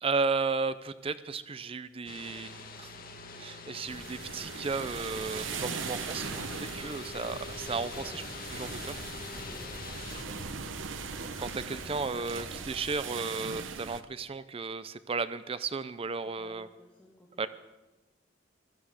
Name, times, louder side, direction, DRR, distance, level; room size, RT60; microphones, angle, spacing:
voice 1, 0.0-2.9 3.4-8.2 8.5-9.0 11.4-16.7 17.4-17.5, right 4 dB, 30° right, 14 dB, 0.5 m, -34 dB
sound 1, 2.1-10.2, left 4 dB, 45° left, 1.5 m, -44 dB
sound 2, 3.9-14.0, right 6 dB, 70° right, 0.9 m, -40 dB
Writing, 4.7-12.9, right 1 dB, 55° right, 3.9 m, -46 dB
voice 2, 9.4-10.1 16.2-17.5, left 1 dB, 5° left, -3 dB, 1.8 m, -55 dB
16.0 x 13.5 x 6.5 m, 1.1 s
head